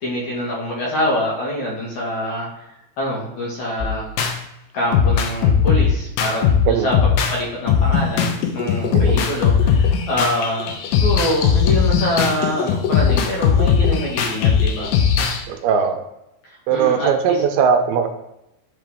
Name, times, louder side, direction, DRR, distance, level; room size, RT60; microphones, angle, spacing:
voice 1, 0.0-2.5 3.0-4.0 4.7-14.9 16.7-17.4, left 1 dB, 60° left, -4 dB, 2.3 m, -25 dB
sound 1, 3.8-4.4 4.9-7.4 7.7-15.4, left 7 dB, 75° left, 2.3 m, -18 dB
voice 2, 15.5-16.0 16.7-18.1, right 7 dB, 85° right, 5 dB, 2.4 m, -19 dB
9.9 x 3.7 x 3.4 m, 0.89 s
omnidirectional pair, 4.6 m